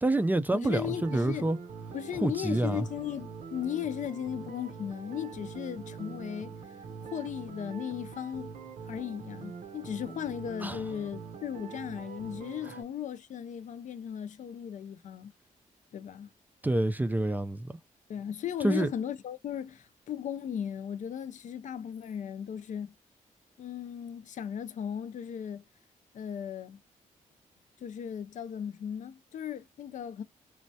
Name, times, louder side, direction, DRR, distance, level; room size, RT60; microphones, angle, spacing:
voice 1, 0.0-1.6 2.2-2.8 10.6-10.8 16.6-17.8 18.6-18.9, right 1 dB, 10° right, 0.3 m, -27 dB
voice 2, 0.6-1.5 1.9-6.5 7.0-8.5 8.8-15.3 15.9-16.3 18.1-22.9 23.6-25.6 26.1-26.8 27.8-30.2, left 9 dB, 60° left, 0.4 m, -37 dB
sound 1, 0.8-12.8, right 6 dB, 70° right, 0.7 m, -44 dB
3.1 x 2.2 x 2.6 m
cardioid pair, 110°, 14 cm